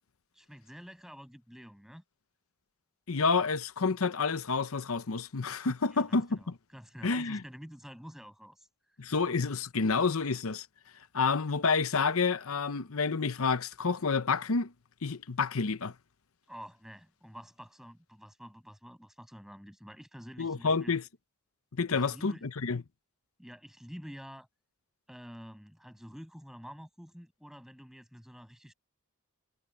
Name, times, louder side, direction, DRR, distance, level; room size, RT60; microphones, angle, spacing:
voice 1, 0.3-2.0 5.9-8.7 16.5-21.0 21.9-22.5 23.4-24.5 25.1-28.7, equal, ahead, 7.2 m, -49 dB
voice 2, 3.1-6.5 7.0-7.4 9.0-10.7 11.1-14.7 15.0-15.9 20.4-21.0 21.7-22.8, left 4 dB, 70° left, 0.9 m, -29 dB
head